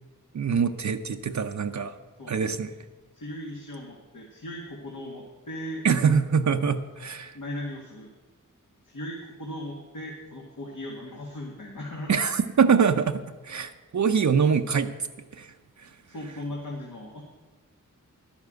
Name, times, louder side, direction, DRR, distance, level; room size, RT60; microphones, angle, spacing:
voice 1, 0.3-1.9 2.3-2.7 5.8-7.4 12.1-14.9 15.3-15.5, right 6 dB, 60° right, 7 dB, 0.6 m, -24 dB
voice 2, 3.1-5.9 7.3-8.1 8.9-12.1 16.1-17.2, left 1 dB, 70° left, -2 dB, 1.9 m, -38 dB
11.0 x 7.2 x 7.7 m, 1.3 s
wide cardioid pair, 70°, 33 cm